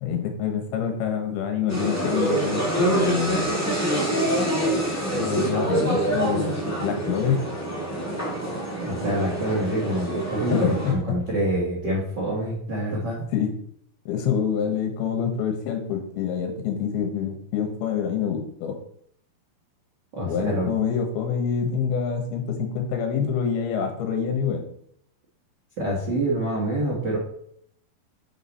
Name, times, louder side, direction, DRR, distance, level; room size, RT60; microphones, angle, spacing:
voice 1, 0.0-3.6 5.1-6.5 6.8-7.4 10.5-10.9 13.3-13.5 14.1-18.8 20.3-24.6, left 7 dB, 80° left, 5 dB, 3.0 m, -26 dB
sound 1, 1.7-10.9, right 1 dB, 20° left, 0.4 m, -26 dB
voice 2, 8.8-13.2 20.1-20.7 25.8-27.2, right 1 dB, 65° right, -4 dB, 1.0 m, -26 dB
6.5 x 6.0 x 4.1 m, 0.69 s
omnidirectional pair, 4.4 m